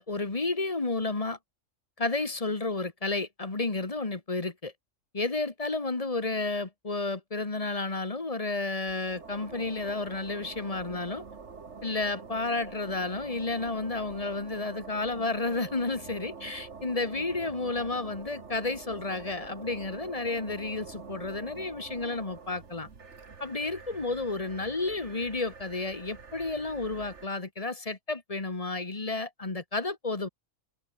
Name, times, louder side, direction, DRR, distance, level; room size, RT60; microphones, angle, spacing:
voice 1, 0.0-1.4 2.0-4.7 5.1-11.2 11.8-22.9 23.4-30.3, left 3 dB, 25° left, 1.8 m, -31 dB
sound 1, 8.9-27.3, right 5 dB, 65° right, 2.2 m, -46 dB
omnidirectional pair, 1.3 m